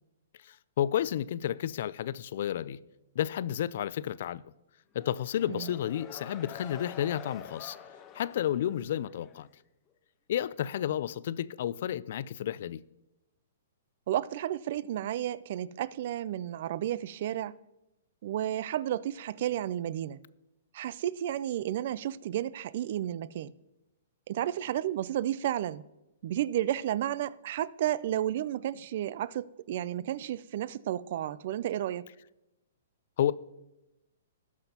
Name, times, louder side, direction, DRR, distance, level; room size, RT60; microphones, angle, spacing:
voice 1, 0.4-2.8 3.2-4.4 4.9-7.8 8.1-9.5 10.3-12.8 33.2-33.3, left 11 dB, 60° left, 0.3 m, -31 dB
sound 1, 4.9-9.4, left 7 dB, 25° left, 0.7 m, -47 dB
voice 2, 14.1-17.5 18.2-20.2 20.7-23.5 24.3-25.8 26.2-32.0, right 12 dB, 55° right, 0.3 m, -32 dB
18.0 x 6.0 x 2.9 m
hypercardioid pair, 150°, 0 cm